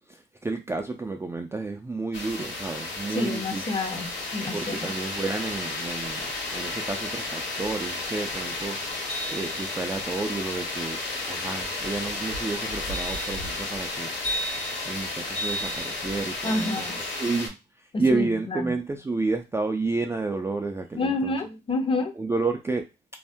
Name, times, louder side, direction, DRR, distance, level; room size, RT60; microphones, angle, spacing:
voice 1, 0.1-3.6 4.5-6.2 6.5-8.8 9.3-11.0 11.3-14.1 14.9-16.8 17.2-17.5 18.0-21.4 22.2-22.8, right 3 dB, 15° right, 0.3 m, -30 dB
sound 1, 2.1-17.5, left 2 dB, 60° left, 1.4 m, -32 dB
voice 2, 3.1-4.9 16.4-17.0 17.9-18.7 20.9-22.1, left 2 dB, 25° left, 0.6 m, -29 dB
2.6 x 2.0 x 3.4 m
cardioid pair, 90°, 20 cm